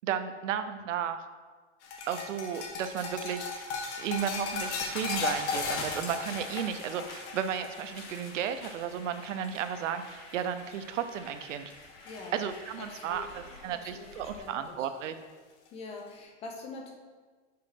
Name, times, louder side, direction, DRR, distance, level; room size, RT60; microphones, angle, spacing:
voice 1, 0.0-1.2 2.1-3.7 4.0-11.7 12.3-15.1, right 8 dB, 80° right, 9 dB, 0.8 m, -34 dB
sound 1, 1.8-10.3 10.6-11.0 11.4-12.3 13.6-13.7 15.0-15.1, left 4 dB, 65° left, 1.6 m, -36 dB
sound 2, 4.0-14.4, left 2 dB, 85° left, 2.5 m, -52 dB
voice 2, 12.1-12.4 12.8-14.9 15.7-16.9, left 3 dB, 15° left, 2 dB, 0.6 m, -44 dB
6.3 x 5.7 x 5.8 m, 1.4 s
supercardioid pair, 165°, 37 cm